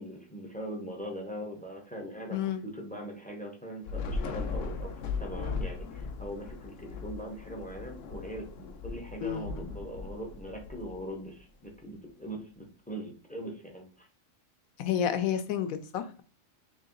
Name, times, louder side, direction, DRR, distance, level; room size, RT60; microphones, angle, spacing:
voice 1, 0.0-14.1, right 1 dB, 15° left, 1 dB, 0.3 m, -41 dB
voice 2, 2.3-2.6 9.2-9.7 14.8-16.2, left 9 dB, 80° left, 9 dB, 1.0 m, -30 dB
Thunder / Rain, 3.8-11.4, left 4 dB, 65° left, 0.6 m, -38 dB
3.2 x 2.8 x 3.7 m, 0.39 s
omnidirectional pair, 1.4 m